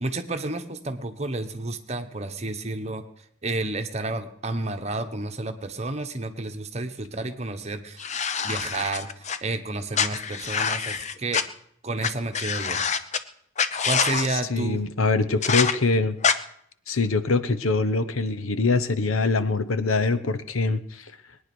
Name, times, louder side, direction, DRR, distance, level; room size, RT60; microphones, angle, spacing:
voice 1, 0.0-3.0 3.4-8.0 8.4-9.1 9.4-11.4 11.8-12.8 13.8-14.8, right 2 dB, 30° right, 7 dB, 1.2 m, -30 dB
sound 1, 8.0-9.4 9.9-11.4 12.0-12.1 12.3-13.2 13.6-14.3 15.4-15.7 16.2-16.3, left 6 dB, 35° left, 0.7 m, -25 dB
voice 2, 14.3-16.2 16.9-21.1, left 3 dB, 85° left, 13 dB, 1.0 m, -24 dB
21.0 x 9.8 x 6.2 m, 0.67 s
head